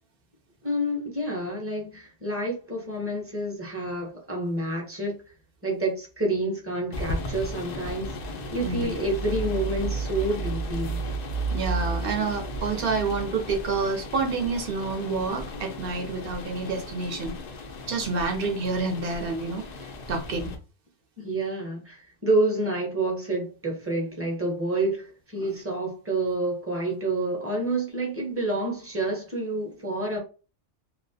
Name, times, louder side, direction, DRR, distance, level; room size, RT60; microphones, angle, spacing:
voice 1, 0.6-5.2 5.6-8.1 8.5-11.0 21.2-30.2, right 2 dB, 15° right, 0.5 m, -28 dB
sound 1, 6.9-20.6, right 1 dB, 75° left, 0.3 m, -34 dB
voice 2, 11.5-17.4 17.9-20.5 25.4-25.5, right 4 dB, 60° right, 0.7 m, -28 dB
2.3 x 2.0 x 2.6 m
omnidirectional pair, 1.3 m